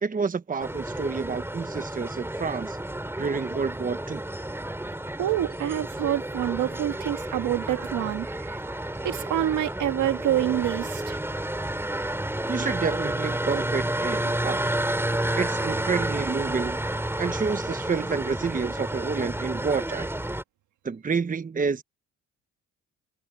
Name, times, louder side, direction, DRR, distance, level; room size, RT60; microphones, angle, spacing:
voice 1, 0.0-2.8 3.2-4.2 12.5-14.7 15.4-16.8 17.2-20.1 20.8-21.8, right 5 dB, 25° right, 1.1 m, -29 dB
sound 1, 0.6-20.4, right 1 dB, 10° right, 4.9 m, -30 dB
voice 2, 5.2-11.2 14.2-14.4, right 12 dB, 75° right, 1.8 m, -27 dB
cardioid pair, 90°, 30 cm